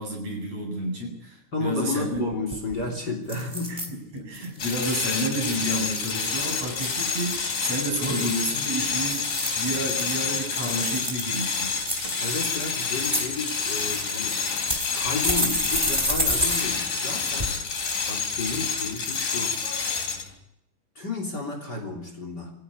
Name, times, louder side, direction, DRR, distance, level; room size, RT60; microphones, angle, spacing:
voice 1, 0.0-2.3 3.7-3.8 4.1-11.8, right 1 dB, 50° right, 1 dB, 8.8 m, -30 dB
voice 2, 1.5-3.8 4.4-4.5 12.2-14.3 14.9-17.5 18.1-19.9 21.0-22.5, left 3 dB, 30° left, 4 dB, 3.8 m, -32 dB
sound 1, 2.1-2.2 2.5-2.8 3.3-3.9 4.3-4.7 9.2-10.2 10.7-11.3 11.8-12.5 12.9-13.2 14.0-14.1 14.7-16.6 16.9-17.0 17.4-17.5, equal, 10° right, 4.3 m, -27 dB
sound 2, 4.6-20.3, left 5 dB, 80° left, 5.3 m, -28 dB
24.5 x 16.0 x 9.7 m, 0.81 s
omnidirectional pair, 3.7 m